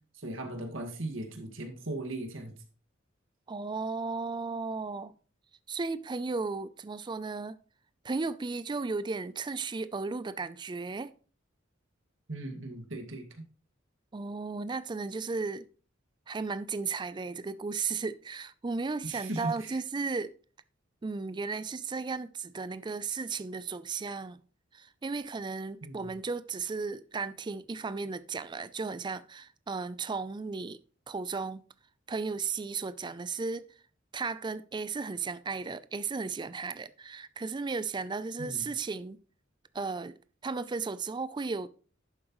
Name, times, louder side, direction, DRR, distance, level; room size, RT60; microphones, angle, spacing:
voice 1, 0.2-2.5 12.3-13.2 19.0-19.7 25.8-26.1 38.4-38.7, right 2 dB, 80° right, 1.9 m, -38 dB
voice 2, 3.5-5.1 5.7-7.6 8.0-11.1 14.1-15.7 16.3-20.3 21.0-24.4 24.7-30.8 31.1-31.6 32.1-33.7 34.1-39.2 39.7-41.7, right 4 dB, 25° right, 0.4 m, -35 dB
11.0 x 7.5 x 3.1 m
head